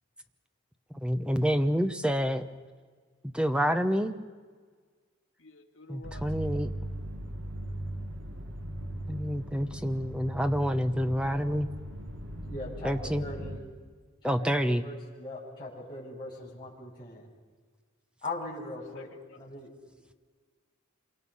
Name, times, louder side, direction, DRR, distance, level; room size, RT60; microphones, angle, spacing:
voice 1, 1.0-2.4 3.2-4.1 5.9-6.7 9.1-11.7 12.8-13.2 14.2-14.8, equal, 5° right, 8 dB, 0.9 m, -28 dB
voice 2, 5.4-6.6 18.9-19.4, left 3 dB, 65° left, 1 dB, 2.6 m, -51 dB
sound 1, 6.0-13.6, right 1 dB, 60° right, 2.2 m, -38 dB
voice 3, 12.4-13.6 14.2-17.3 18.2-19.1 19.3-19.7, left 2 dB, 20° left, -6 dB, 7.2 m, -40 dB
27.0 x 24.0 x 5.6 m, 1.5 s
head